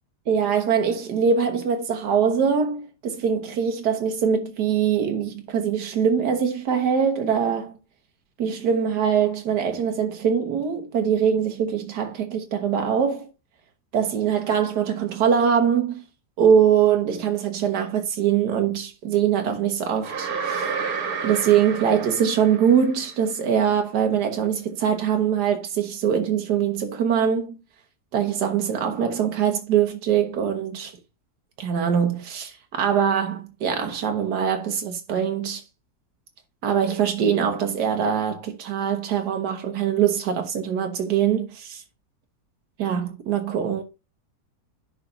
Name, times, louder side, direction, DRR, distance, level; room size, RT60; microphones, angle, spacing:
voice 1, 0.3-7.8 8.4-13.3 13.9-16.0 16.4-20.7 21.2-27.6 28.1-30.9 31.6-35.6 36.6-41.8 42.8-43.8, right 8 dB, 90° right, 1.5 m, -23 dB
sound 1, 20.0-23.1, right 5 dB, 70° right, 1.7 m, -30 dB
10.5 x 4.0 x 3.8 m
omnidirectional pair, 1.7 m